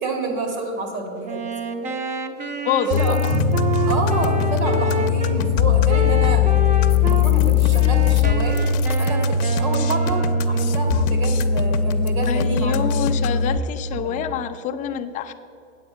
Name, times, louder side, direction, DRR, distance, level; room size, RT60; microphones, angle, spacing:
voice 1, 0.0-1.4 2.9-3.2 3.9-6.4 7.0-8.6 9.0-12.8 14.0-14.2, right 3 dB, 80° right, 3 dB, 2.6 m, -28 dB
Wind instrument woodwind instrument, 1.2-5.4 5.9-7.3 7.7-10.9, right 3 dB, 15° right, 0.7 m, -29 dB
voice 2, 2.6-3.2 12.3-15.3, left 9 dB, 20° left, 8 dB, 0.4 m, -26 dB
sound 1, 2.9-13.6, left 7 dB, 50° left, 0.7 m, -20 dB
sound 2, 3.3-11.0, right 7 dB, 55° right, 0.5 m, -31 dB
8.5 x 8.0 x 5.8 m, 2.7 s
hypercardioid pair, 105°, 41 cm